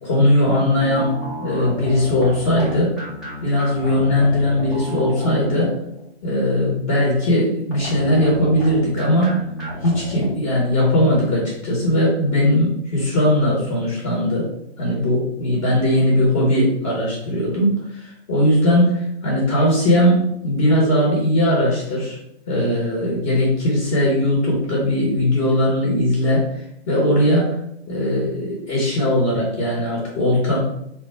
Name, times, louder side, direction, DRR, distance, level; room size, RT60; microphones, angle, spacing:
voice 1, 0.0-2.9 3.4-5.7 6.2-9.4 9.8-14.5 14.8-22.2 22.5-27.6 27.9-30.6, left 1 dB, 30° left, -4 dB, 1.2 m, -19 dB
sound 1, 0.8-6.1 7.7-10.3, equal, ahead, 0.4 m, -33 dB
3.7 x 2.3 x 4.4 m, 0.76 s
hypercardioid pair, 140°, 33 cm